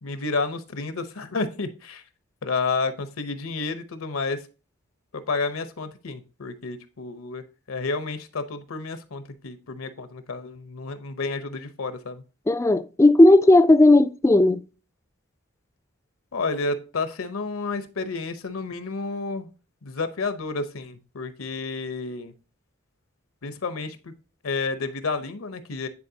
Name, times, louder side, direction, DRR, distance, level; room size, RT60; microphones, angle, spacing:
voice 1, 0.0-2.0 2.4-4.5 5.1-7.4 7.7-12.2 16.3-19.5 19.8-22.3 23.4-24.1 24.4-25.9, left 3 dB, 80° left, 0.8 m, -30 dB
voice 2, 12.5-14.6, left 2 dB, 15° left, 0.3 m, -15 dB
9.6 x 4.2 x 2.7 m
head